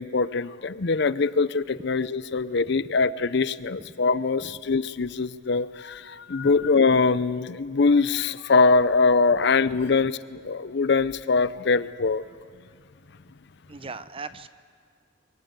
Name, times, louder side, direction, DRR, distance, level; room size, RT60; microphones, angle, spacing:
voice 1, 0.0-12.2, left 4 dB, 60° left, 15 dB, 0.6 m, -23 dB
voice 2, 13.7-14.5, right 4 dB, 30° right, 12 dB, 0.8 m, -38 dB
29.0 x 22.5 x 8.0 m, 2.1 s
head